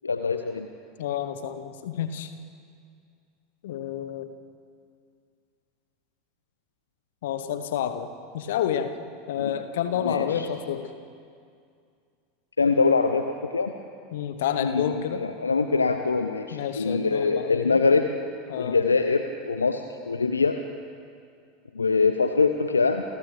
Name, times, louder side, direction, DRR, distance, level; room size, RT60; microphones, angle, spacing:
voice 1, 0.0-0.7 9.4-9.5 10.0-10.5 12.6-13.7 14.6-18.1 18.6-20.6 21.7-23.0, left 4 dB, 80° left, 8 dB, 0.8 m, -24 dB
voice 2, 1.0-2.3 3.6-4.3 7.2-8.1 8.3-8.9 9.3-10.9 14.1-15.2 16.5-17.8 18.5-18.8, left 9 dB, 60° left, 9 dB, 1.4 m, -29 dB
29.0 x 27.5 x 3.5 m, 2.3 s
figure-of-eight pair, 80°, 0 cm